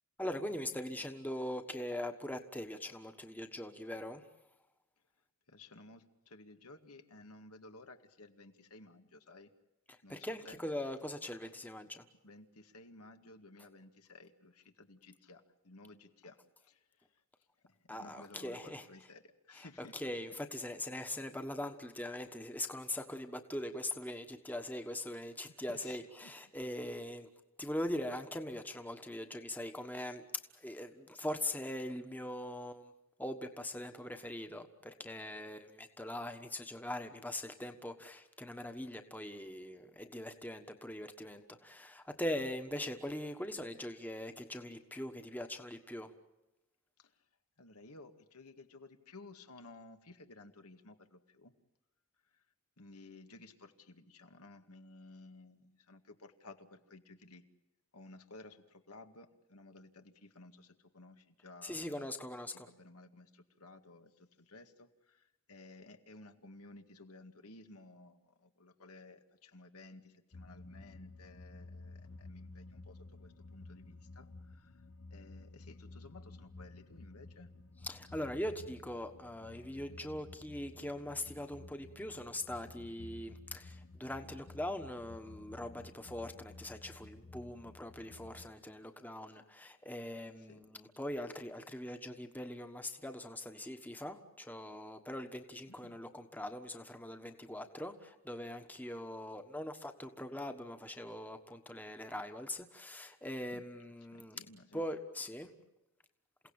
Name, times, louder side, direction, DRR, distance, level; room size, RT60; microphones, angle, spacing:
voice 1, 0.2-4.2 10.1-12.0 17.9-18.8 19.6-27.3 27.6-32.9 33.2-46.1 61.6-62.7 77.8-104.4 104.7-105.5, left 1 dB, 10° left, 6 dB, 1.3 m, -41 dB
voice 2, 5.5-9.5 10.0-10.6 12.2-17.2 17.6-20.1 25.4-26.3 47.0-47.2 47.6-51.5 52.3-52.4 52.8-57.4 57.9-61.9 62.5-74.8 75.1-77.5 90.4-90.6 95.7-96.0 103.5-103.6 104.1-104.8, left 2 dB, 90° left, 6 dB, 2.0 m, -56 dB
sound 1, 70.3-88.5, left 2 dB, 55° left, 1.0 m, -53 dB
28.5 x 17.5 x 8.8 m, 0.97 s
head